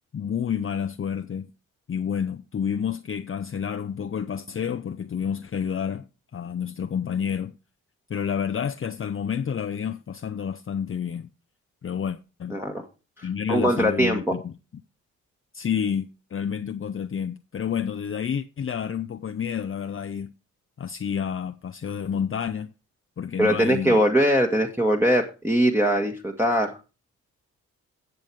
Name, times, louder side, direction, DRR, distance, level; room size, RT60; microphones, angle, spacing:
voice 1, 0.1-1.5 1.9-6.1 6.3-7.5 8.1-11.3 11.8-12.6 13.2-14.5 15.5-20.3 20.8-22.7 23.2-24.0, left 7 dB, 35° left, 0.7 m, -29 dB
voice 2, 12.5-12.9 13.2-14.4 23.4-26.8, equal, 5° right, 1.6 m, -22 dB
10.5 x 7.1 x 4.6 m
hypercardioid pair, 45°, 37 cm